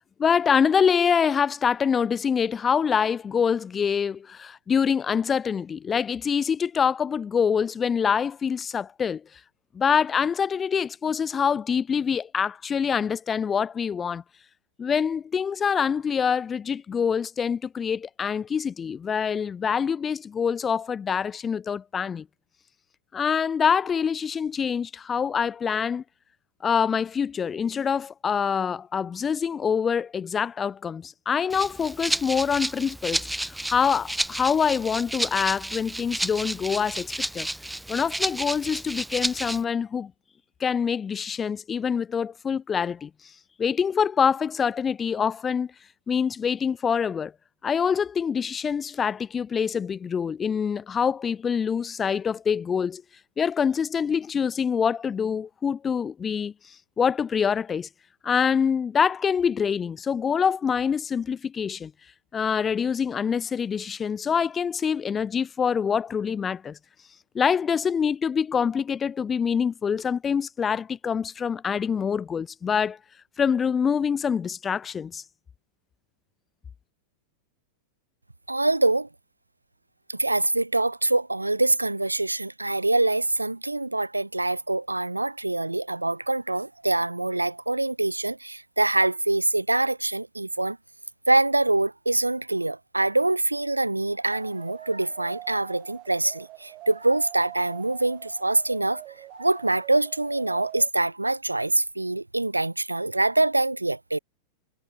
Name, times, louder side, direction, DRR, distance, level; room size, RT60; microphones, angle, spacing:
voice 1, 0.2-9.2 9.7-14.2 14.8-22.3 23.1-26.0 26.6-33.3 33.7-37.5 37.9-40.1 40.6-43.1 43.6-45.7 46.1-47.3 47.6-53.0 53.4-56.5 57.0-57.9 58.2-61.9 62.3-66.8 67.3-73.0 73.4-75.2, left 7 dB, 20° left, 0.4 m, -25 dB
Rattle (instrument), 31.5-39.6, right 1 dB, 5° right, 1.4 m, -31 dB
voice 2, 78.5-79.1 80.1-90.8 91.3-99.0 99.4-104.2, right 2 dB, 85° right, 0.9 m, -24 dB
sound 1, 94.3-100.9, right 18 dB, 40° right, 1.4 m, -45 dB
figure-of-eight pair, 90°, 0 cm